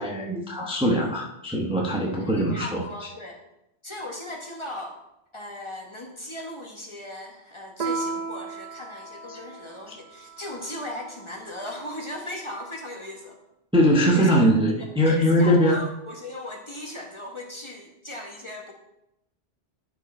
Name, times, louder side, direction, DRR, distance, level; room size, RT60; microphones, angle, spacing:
voice 1, 0.0-2.8 9.3-9.4 13.7-15.8, equal, 5° right, -2 dB, 0.9 m, -21 dB
voice 2, 1.9-3.4 3.8-5.0 5.3-13.4 14.1-18.7, left 1 dB, 25° left, 0 dB, 1.3 m, -38 dB
Piano, 7.8-12.8, right 4 dB, 45° right, 0.7 m, -36 dB
12.0 x 5.0 x 4.3 m, 0.86 s
omnidirectional pair, 1.2 m